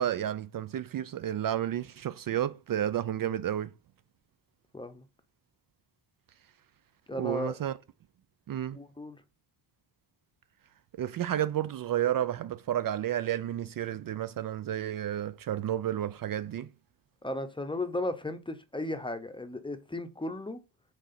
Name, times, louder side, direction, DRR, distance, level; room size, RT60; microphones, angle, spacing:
voice 1, 0.0-3.7 7.2-7.7 8.5-8.8 11.0-16.7, right 11 dB, 50° right, 0.5 m, -31 dB
voice 2, 4.7-5.0 7.1-7.6 8.7-9.2 17.2-20.6, left 1 dB, 10° left, 0.7 m, -35 dB
6.5 x 4.8 x 4.2 m
wide cardioid pair, 135°, 44 cm